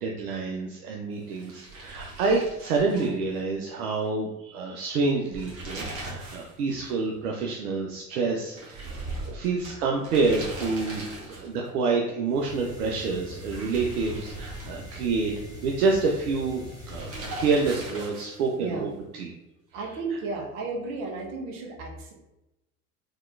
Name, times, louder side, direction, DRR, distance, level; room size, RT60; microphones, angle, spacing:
voice 1, 0.0-8.9 9.2-15.3 15.6-17.1 17.4-18.9 19.2-19.3, right 4 dB, 75° right, 0 dB, 0.6 m, -27 dB
sound 1, 1.3-3.8 4.1-4.2 5.2-6.6 6.9-7.0 8.6-11.7 13.3-15.3 16.8-18.5, right 2 dB, 30° right, 1.2 m, -39 dB
sound 2, 12.3-18.2, left 1 dB, 10° right, 1.3 m, -43 dB
voice 2, 18.6-18.9 19.7-22.1, right 3 dB, 55° right, 0 dB, 1.0 m, -33 dB
3.6 x 2.9 x 2.4 m, 0.93 s
figure-of-eight pair, 75°, 46 cm